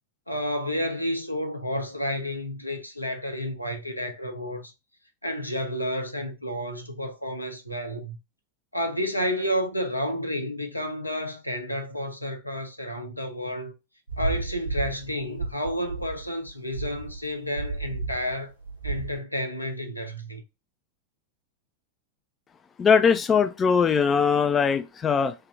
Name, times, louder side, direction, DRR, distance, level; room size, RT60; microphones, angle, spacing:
voice 1, 0.3-4.7 5.2-8.2 8.7-13.7 14.2-18.5 18.8-20.4, equal, 90° left, 0.7 m, -31 dB
sound 1, 14.1-19.2, right 3 dB, 90° right, 1.3 m, -32 dB
voice 2, 22.8-25.3, left 6 dB, 20° left, 0.3 m, -21 dB
3.4 x 2.8 x 3.4 m
figure-of-eight pair, 90°, 0 cm